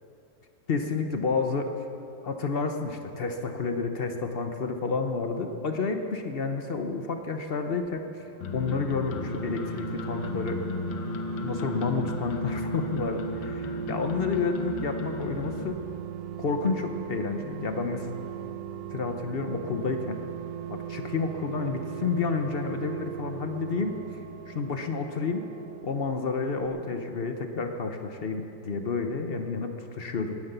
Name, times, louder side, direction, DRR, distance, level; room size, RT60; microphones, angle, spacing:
voice 1, 0.7-1.7 2.2-8.2 8.5-10.6 11.4-13.3 13.9-15.8 16.4-18.1 18.9-20.2 20.7-24.0 24.5-25.4 25.8-30.4, left 4 dB, 55° left, 5 dB, 0.6 m, -30 dB
sound 1, 8.0-26.4 26.7-26.8, right 8 dB, 70° right, 1.2 m, -38 dB
sound 2, 8.4-15.6, left 3 dB, 80° left, 1.7 m, -35 dB
sound 3, 19.7-26.3, right 4 dB, 15° left, 1.3 m, -50 dB
18.5 x 9.7 x 6.8 m, 2.7 s
omnidirectional pair, 2.1 m